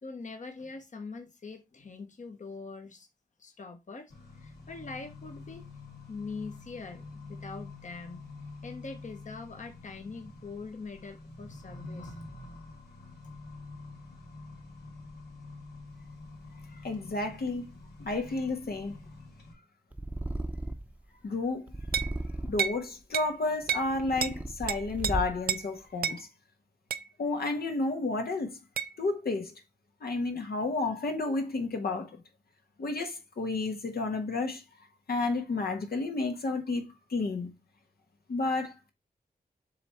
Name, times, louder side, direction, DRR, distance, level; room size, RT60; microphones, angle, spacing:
voice 1, 0.0-3.1 3.4-4.1 4.4-5.6 6.1-8.2 8.6-12.4, left 4 dB, 50° left, 1.2 m, -43 dB
Accelerating revving vroom, 4.1-19.5, left 3 dB, 90° left, 2.3 m, -47 dB
voice 2, 16.8-17.7 18.0-18.9 21.2-21.7 22.5-26.3 27.2-28.6 29.0-29.5 30.0-32.1 32.8-34.6 35.1-36.8 37.1-37.5 38.3-38.9, left 3 dB, 70° left, 1.3 m, -31 dB
Purr, 19.9-21.0 21.7-22.8 23.5-25.6, right 1 dB, 10° right, 0.8 m, -36 dB
sound 1, 21.9-22.2 22.6-22.8 23.1-23.3 23.7-23.9 24.2-24.4 24.7-25.1 25.5-25.7 26.0-26.2 26.9-27.1 28.8-28.9, right 7 dB, 70° right, 0.4 m, -30 dB
6.9 x 3.3 x 4.3 m
cardioid pair, 70°, 16 cm